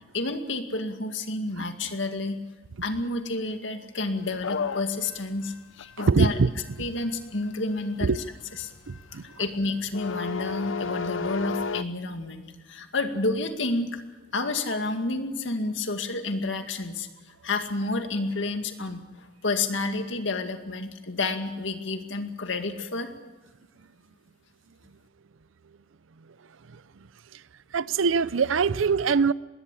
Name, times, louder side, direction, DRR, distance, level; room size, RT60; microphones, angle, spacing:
voice 1, 0.1-2.4 2.8-6.4 6.8-8.2 8.5-8.7 9.4-14.0 14.3-17.1 17.4-23.1, left 2 dB, 70° left, 2.1 m, -30 dB
sound 1, 4.3-11.8, left 5 dB, 85° left, 0.7 m, -34 dB
voice 2, 6.1-6.5 8.0-8.2 8.9-9.2 27.7-29.3, right 5 dB, 90° right, 0.6 m, -22 dB
21.0 x 17.5 x 8.4 m
head